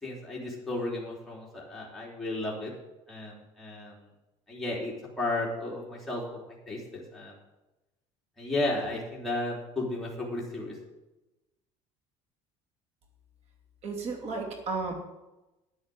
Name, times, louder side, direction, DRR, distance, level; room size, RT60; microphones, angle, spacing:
voice 1, 0.0-2.7 3.1-4.0 4.5-7.3 8.4-10.8, left 2 dB, ahead, -5 dB, 3.5 m, -34 dB
voice 2, 13.8-14.9, right 4 dB, 55° right, 3 dB, 2.7 m, -33 dB
9.7 x 8.7 x 7.8 m, 1.0 s
supercardioid pair, 105°, 13 cm